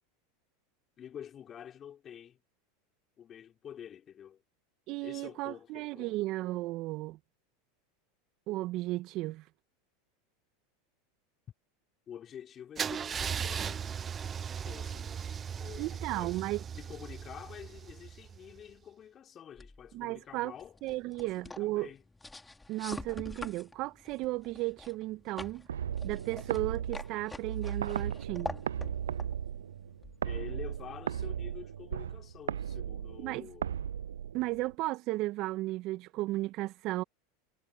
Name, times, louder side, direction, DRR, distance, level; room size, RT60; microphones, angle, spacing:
voice 1, 1.0-2.4 3.2-4.4 5.0-6.2 12.1-13.9 14.6-20.8 21.2-22.0 30.2-33.7, left 9 dB, 35° left, 3.7 m, -48 dB
voice 2, 4.9-7.2 8.5-9.4 15.8-16.6 19.9-20.5 20.8-21.9 22.7-25.7 26.0-28.6 33.2-33.5 34.3-37.0, right 19 dB, 50° right, 2.2 m, -34 dB
Car / Engine starting / Idling, 12.8-18.6, right 7 dB, 30° right, 0.8 m, -38 dB
sound 1, 19.6-30.7, left 2 dB, 10° left, 2.6 m, -47 dB
sound 2, 25.7-34.7, right 8 dB, 85° right, 0.4 m, -36 dB
hypercardioid pair, 90°, 0 cm